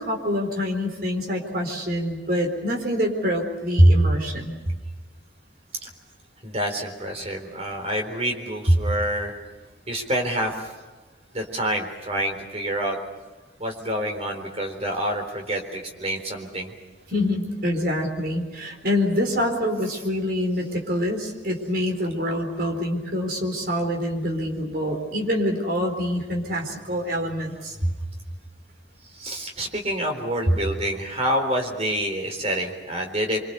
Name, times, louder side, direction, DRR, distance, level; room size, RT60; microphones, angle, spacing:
voice 1, 0.0-4.6 17.1-27.9, equal, 55° right, 3 dB, 4.3 m, -24 dB
voice 2, 6.4-9.3 9.9-10.7 11.3-13.0 13.6-16.7 19.8-20.0 29.1-33.4, equal, 35° right, 3 dB, 3.9 m, -28 dB
25.5 x 25.0 x 6.8 m, 1.2 s
head